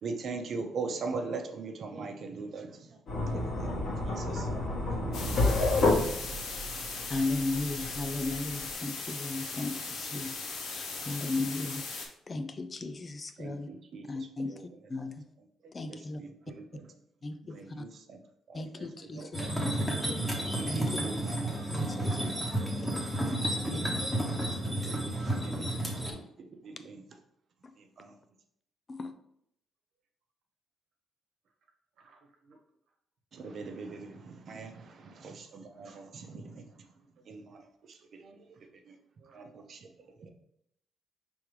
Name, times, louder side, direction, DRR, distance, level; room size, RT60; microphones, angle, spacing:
voice 1, 0.0-4.8 5.1-5.5 6.2-6.4 6.7-7.3 11.1-11.2 13.4-14.9 15.4-15.5 15.9-16.9 17.4-18.2 18.5-19.3 20.4-21.4 21.7-22.7 23.7-24.1 24.6-26.1 26.4-27.1 27.8-28.1 33.3-36.6 37.3-39.0 39.3-39.9 40.2-40.3, right 4 dB, 55° right, 0.7 m, -42 dB
sound 1, 3.1-8.7, left 2 dB, 60° left, 1.7 m, -30 dB
sound 2, 5.1-12.1, left 4 dB, 80° left, 1.0 m, -38 dB
voice 2, 7.1-10.4 10.7-13.7 14.1-14.5 14.9-15.2 15.7-16.2 17.2-17.8 18.5-19.2 20.7-21.1 21.7-22.2 23.7-23.9 28.9-29.1, left 2 dB, 35° left, 0.4 m, -36 dB
voice 3, 18.6-19.7 20.0-20.1 22.1-22.7 23.4-23.7 32.0-32.6 35.8-36.0 36.5-36.7 36.9-37.1 39.2-39.5 40.0-40.1, right 4 dB, 75° right, 1.0 m, -54 dB
sound 3, 19.3-26.1, right 1 dB, 5° left, 1.1 m, -31 dB
4.7 x 3.5 x 3.2 m
cardioid pair, 90°, 0 cm